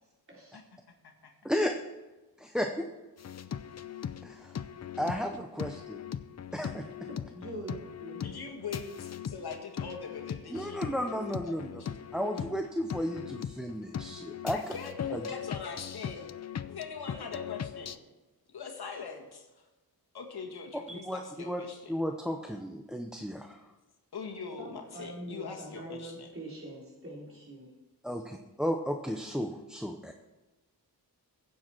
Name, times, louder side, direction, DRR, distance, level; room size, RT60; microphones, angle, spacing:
voice 1, 0.3-0.6 7.3-8.4 24.6-27.7, right 1 dB, 35° right, -4 dB, 4.1 m, -44 dB
voice 2, 1.4-1.8 2.4-2.9 4.2-4.6 5.0-6.0 6.5-6.9 10.5-14.6 15.1-15.2 20.9-21.6 21.9-23.6 28.0-30.1, equal, ahead, 4 dB, 0.7 m, -34 dB
sound 1, 3.2-18.0, left 8 dB, 45° left, 0.5 m, -40 dB
voice 3, 8.1-12.0 14.5-16.3 16.7-18.0 18.5-19.7 20.1-21.9 24.1-26.3, left 5 dB, 80° left, 2 dB, 1.7 m, -42 dB
16.0 x 7.5 x 4.5 m, 1.2 s
wide cardioid pair, 110°, 38 cm